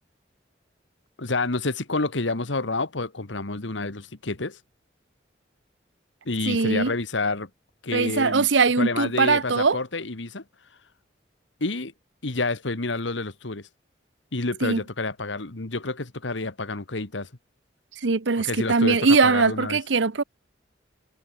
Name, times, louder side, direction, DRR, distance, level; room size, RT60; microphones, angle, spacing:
voice 1, 1.2-4.6 6.2-7.5 7.8-8.5 8.8-10.4 11.6-11.9 12.2-13.7 14.3-17.3 18.4-19.8, left 3 dB, 85° left, 1.7 m, -29 dB
voice 2, 6.5-6.9 7.9-9.8 14.6-14.8 18.0-20.2, right 4 dB, 85° right, 0.9 m, -21 dB
head